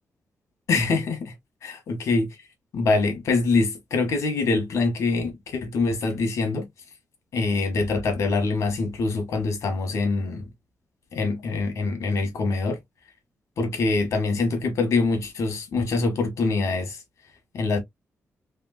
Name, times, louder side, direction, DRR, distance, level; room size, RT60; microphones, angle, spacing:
voice 1, 0.7-1.3 1.6-2.3 2.7-6.7 7.3-10.5 11.1-12.8 13.6-17.0 17.5-17.8, left 3 dB, 70° left, 1.4 m, -24 dB
3.6 x 3.2 x 2.4 m
wide cardioid pair, 175°, 5 cm